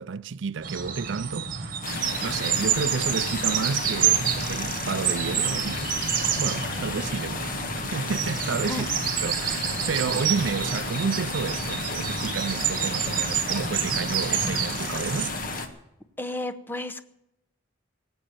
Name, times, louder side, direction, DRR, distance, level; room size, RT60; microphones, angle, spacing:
voice 1, 0.0-1.9 2.2-5.8 6.4-8.9 9.2-15.3, right 5 dB, 70° right, 0.4 m, -31 dB
sound 1, 0.6-15.3, right 8 dB, 45° right, 1.5 m, -28 dB
sound 2, 1.8-15.7, left 3 dB, 45° left, 1.6 m, -33 dB
voice 2, 8.7-9.0 16.2-17.0, left 2 dB, 10° left, 0.8 m, -32 dB
19.5 x 7.9 x 8.8 m
head